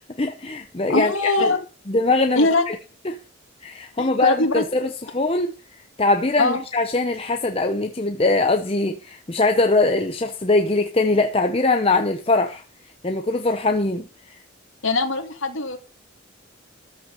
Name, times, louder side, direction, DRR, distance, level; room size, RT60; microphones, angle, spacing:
voice 1, 0.2-1.5 1.9-2.8 3.0-3.2 3.6-5.5 6.0-12.6 13.0-14.4, left 2 dB, 30° left, 0.8 m, -22 dB
voice 2, 0.9-1.6 2.4-2.6 4.0-4.6 6.4-6.6 14.8-15.8, left 2 dB, 80° left, 2.2 m, -21 dB
13.5 x 6.0 x 6.8 m
head